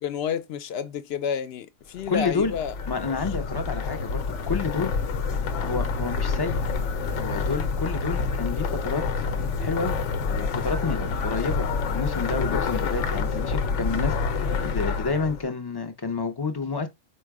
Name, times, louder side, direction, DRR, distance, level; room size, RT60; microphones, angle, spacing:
voice 1, 0.0-2.7 5.0-5.1, left 7 dB, 65° left, 0.8 m, -30 dB
sound 1, 2.0-15.5, left 4 dB, 85° left, 1.0 m, -28 dB
voice 2, 2.1-2.5 2.9-4.9 5.6-6.6 7.1-9.0 9.6-10.0 10.3-16.9, left 4 dB, 30° left, 0.4 m, -29 dB
4.6 x 2.1 x 4.7 m
omnidirectional pair, 1.2 m